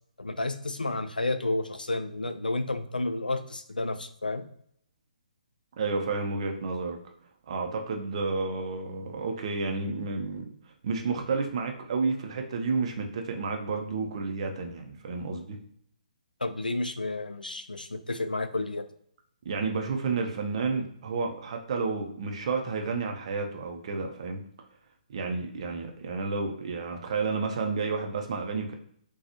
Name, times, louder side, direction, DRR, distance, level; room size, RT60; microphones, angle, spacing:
voice 1, 0.2-4.5 16.4-18.9, left 2 dB, 85° left, 9 dB, 0.4 m, -31 dB
voice 2, 5.8-7.0 7.5-10.5 10.8-15.6 19.4-24.4 25.1-28.7, right 4 dB, 40° right, 3 dB, 0.5 m, -31 dB
3.9 x 2.3 x 2.8 m, 0.67 s
figure-of-eight pair, 135°, 5 cm